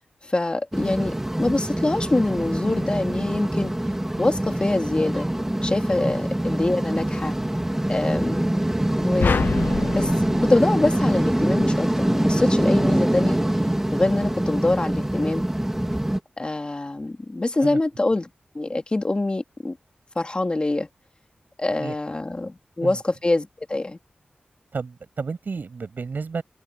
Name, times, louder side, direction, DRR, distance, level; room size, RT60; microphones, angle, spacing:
voice 1, 0.2-3.7 4.2-5.3 5.6-7.3 7.9-8.5 9.0-9.4 9.9-10.1 10.4-13.4 13.9-15.4 16.4-18.3 18.5-19.8 20.2-20.9 21.6-24.0, left 2 dB, 30° left, 2.4 m, -24 dB
sound 1, 0.7-16.2, right 1 dB, 10° right, 2.5 m, -24 dB
sound 2, 9.2-11.6, left 6 dB, 80° left, 0.6 m, -27 dB
voice 2, 24.7-26.4, right 4 dB, 70° right, 7.9 m, -31 dB
wide cardioid pair, 75°, 3 cm